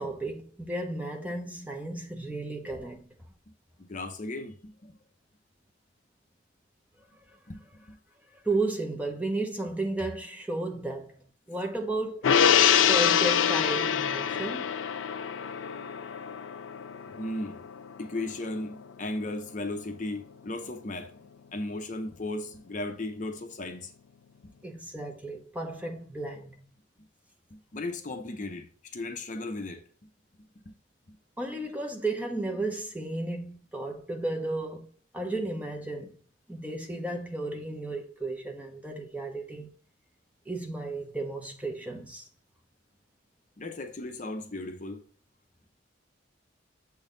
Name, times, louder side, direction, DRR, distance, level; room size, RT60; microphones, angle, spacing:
voice 1, 0.0-3.1 8.4-11.2 11.5-12.3 12.9-14.7 24.6-26.6 31.4-34.9 35.1-36.2 36.5-39.7 40.5-42.3, right 2 dB, 10° right, 0.9 m, -33 dB
voice 2, 3.8-5.0 7.5-7.6 7.9-8.0 17.1-17.6 18.0-21.1 21.5-23.9 27.5-28.7 28.9-29.8 30.7-30.8 43.6-45.0, left 2 dB, 40° left, 0.7 m, -36 dB
Gong, 12.2-18.9 19.2-19.3, left 8 dB, 90° left, 0.4 m, -25 dB
7.2 x 3.9 x 3.9 m
head